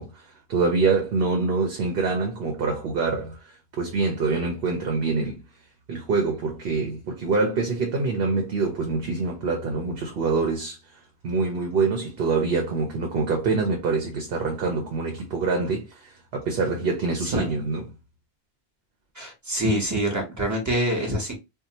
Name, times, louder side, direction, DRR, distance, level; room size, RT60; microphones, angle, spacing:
voice 1, 0.0-5.4 5.9-10.8 11.2-17.9, right 4 dB, 70° right, 0.9 m, -25 dB
voice 2, 19.2-21.4, equal, 20° right, 0.9 m, -25 dB
2.7 x 2.1 x 2.7 m
omnidirectional pair, 1.0 m